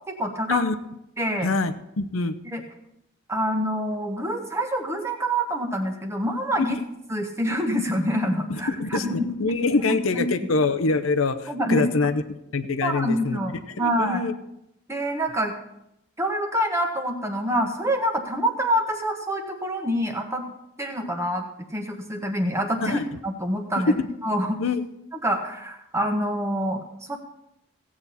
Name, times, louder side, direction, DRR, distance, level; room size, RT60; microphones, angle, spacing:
voice 1, 0.1-0.6 1.2-1.5 2.5-2.6 3.3-6.8 7.1-9.4 9.6-10.3 11.5-11.9 12.8-14.2 14.9-15.5 16.2-20.5 20.8-21.5 21.7-23.9 24.2-24.6 25.2-26.8 27.1-27.2, equal, 15° right, 4 dB, 1.2 m, -26 dB
voice 2, 1.4-2.3 6.6-6.8 8.5-9.1 9.4-12.2 12.5-13.4 13.8-14.3 22.8-23.0 23.8-24.1 24.6-24.8, left 3 dB, 85° left, 9 dB, 0.8 m, -24 dB
16.0 x 8.6 x 4.2 m, 0.81 s
head